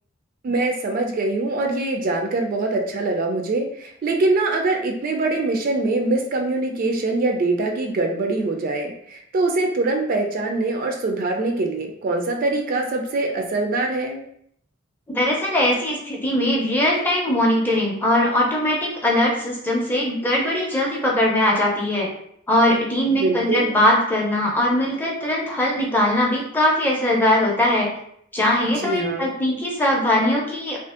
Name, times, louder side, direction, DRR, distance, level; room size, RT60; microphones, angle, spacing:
voice 1, 0.4-14.2 23.1-23.7 28.6-29.3, right 2 dB, 45° right, 3 dB, 0.3 m, -23 dB
voice 2, 15.1-22.1 22.5-27.9 28.3-30.8, left 1 dB, 10° left, -3 dB, 0.5 m, -20 dB
2.5 x 2.4 x 2.4 m, 0.69 s
head